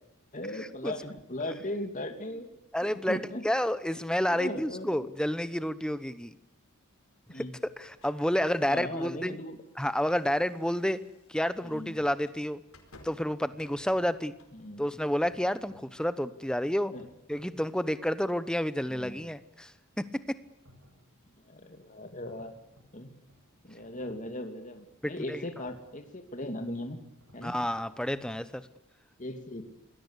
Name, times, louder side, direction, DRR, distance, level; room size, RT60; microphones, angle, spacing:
voice 1, 0.3-2.5 2.8-3.4 4.3-5.1 7.3-7.6 8.6-9.6 11.6-11.9 14.5-14.8 16.9-17.1 18.9-19.2 21.5-22.5 22.9-23.1 23.6-27.0 27.3-27.5 29.2-29.7, left 1 dB, 35° left, 6 dB, 2.7 m, -38 dB
voice 2, 2.7-6.4 7.3-7.4 7.8-9.4 9.8-11.0 11.3-12.6 13.0-14.4 14.8-16.9 17.3-19.7 20.0-20.4 25.0-25.4 27.4-28.7, equal, 5° left, 13 dB, 1.0 m, -30 dB
sound 1, 7.8-14.6, left 2 dB, 70° left, 4.9 m, -61 dB
sound 2, 11.2-28.7, equal, 75° right, 7.4 m, -63 dB
27.0 x 20.5 x 8.3 m, 0.83 s
head